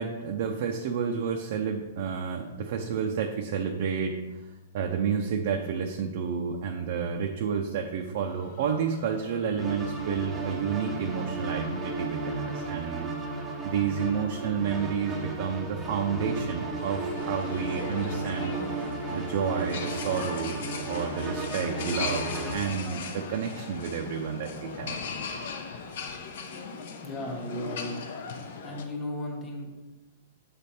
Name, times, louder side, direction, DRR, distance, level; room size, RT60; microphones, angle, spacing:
voice 1, 0.0-4.2 4.7-13.1 13.6-18.6 19.1-25.0, right 6 dB, 50° right, 2 dB, 0.5 m, -30 dB
sound 1, 8.2-14.9, equal, 35° left, 1.2 m, -49 dB
sound 2, 9.6-22.5, right 3 dB, 10° right, 0.7 m, -34 dB
sound 3, 16.8-28.8, left 5 dB, 60° left, 0.7 m, -38 dB
voice 2, 27.0-28.0 28.2-29.7, left 1 dB, 10° left, -2 dB, 1.0 m, -36 dB
7.2 x 3.4 x 4.2 m, 1.1 s
hypercardioid pair, 165°, 0 cm